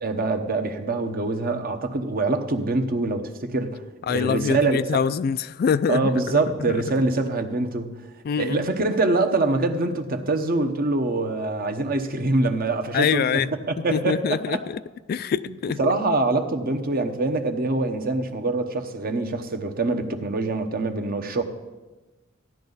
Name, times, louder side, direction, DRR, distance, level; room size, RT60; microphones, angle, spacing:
voice 1, 0.0-3.8 4.1-5.0 5.9-8.0 8.4-13.4 13.7-14.6 15.8-21.4, right 2 dB, 45° right, 1.0 m, -24 dB
voice 2, 4.0-6.1 6.6-6.9 8.2-8.7 12.9-13.5 13.9-14.8 15.1-15.9, left 7 dB, 45° left, 0.3 m, -24 dB
15.0 x 10.5 x 4.0 m
head